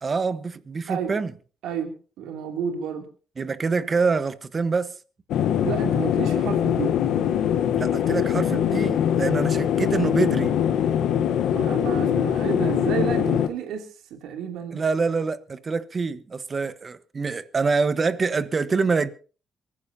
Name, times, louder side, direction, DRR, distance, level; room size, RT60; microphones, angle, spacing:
voice 1, 0.0-1.3 3.4-4.9 7.8-10.5 14.7-19.1, right 4 dB, 35° right, 1.2 m, -25 dB
voice 2, 1.6-3.0 5.6-7.0 11.5-14.8, right 7 dB, 90° right, 2.8 m, -31 dB
sound 1, 5.3-13.5, left 9 dB, 80° left, 1.1 m, -22 dB
24.0 x 15.0 x 2.8 m
cardioid pair, 90°, 0 cm